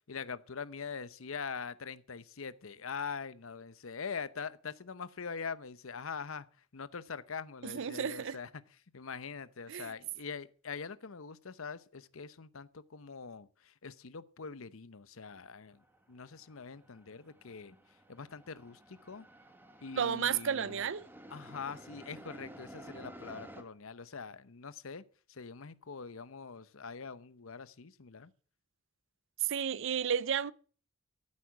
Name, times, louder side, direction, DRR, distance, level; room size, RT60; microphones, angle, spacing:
voice 1, 0.1-6.5 6.7-8.5 8.9-15.8 16.1-17.8 18.1-19.3 19.8-20.8 21.3-25.0 25.3-28.3, left 5 dB, 75° left, 0.8 m, -43 dB
voice 2, 7.6-8.4 9.7-9.9 20.0-21.0 29.4-30.5, right 8 dB, 60° right, 0.6 m, -32 dB
sound 1, 15.8-16.0 16.2-23.6, right 1 dB, 10° right, 1.6 m, -52 dB
14.0 x 8.5 x 6.0 m
head